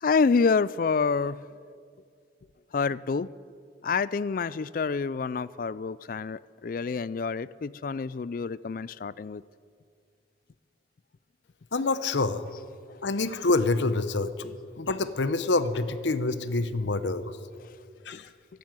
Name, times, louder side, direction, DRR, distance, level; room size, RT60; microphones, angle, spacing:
voice 1, 0.0-1.5 2.7-3.3 3.8-9.4 14.4-14.5 18.1-18.2, left 5 dB, 45° left, 20 dB, 0.3 m, -27 dB
voice 2, 11.7-12.4 13.0-14.3 14.8-17.4 18.0-18.3, left 3 dB, 75° left, 13 dB, 0.8 m, -26 dB
15.5 x 12.0 x 7.7 m, 2.2 s
head